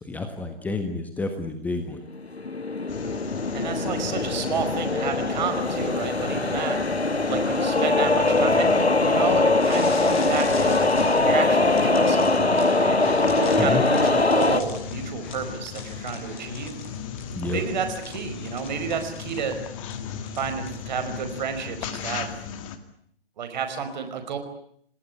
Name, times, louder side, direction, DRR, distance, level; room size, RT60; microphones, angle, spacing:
voice 1, 0.0-2.0 13.6-13.8 17.3-17.6, left 3 dB, 5° left, 6 dB, 1.6 m, -29 dB
sound 1, 2.1-14.6, left 3 dB, 85° left, 1.5 m, -22 dB
sound 2, 2.9-22.8, left 7 dB, 30° left, 2.4 m, -37 dB
voice 2, 3.5-6.8 7.3-10.8 11.1-16.7 17.5-19.6 20.4-22.3 23.4-24.4, right 6 dB, 45° right, 8 dB, 5.3 m, -31 dB
sound 3, 9.6-11.5 11.8-20.8 21.2-21.4 22.2-22.3, left 4 dB, 50° left, 7.9 m, -42 dB
28.5 x 19.0 x 9.7 m, 0.68 s
figure-of-eight pair, 125°, 31 cm